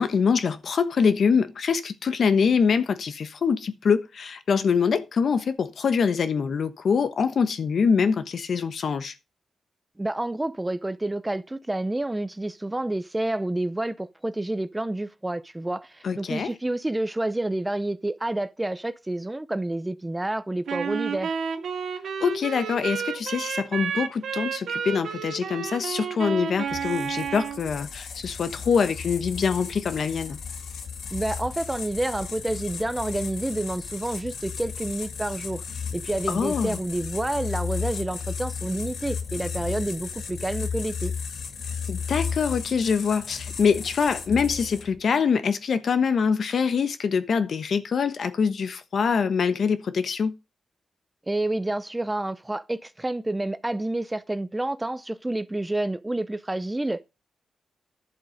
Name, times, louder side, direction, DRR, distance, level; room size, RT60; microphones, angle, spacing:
voice 1, 0.0-9.1 16.0-16.5 22.2-30.4 36.3-36.8 41.9-50.3, left 6 dB, 60° left, 1.2 m, -24 dB
voice 2, 10.0-21.3 31.1-41.1 51.3-57.0, right 1 dB, 10° right, 0.6 m, -29 dB
Wind instrument woodwind instrument, 20.7-27.6, right 6 dB, 85° right, 2.2 m, -31 dB
sound 1, 26.7-45.0, left 6 dB, 85° left, 1.9 m, -34 dB
11.0 x 7.4 x 5.2 m
wide cardioid pair, 135°, 0 cm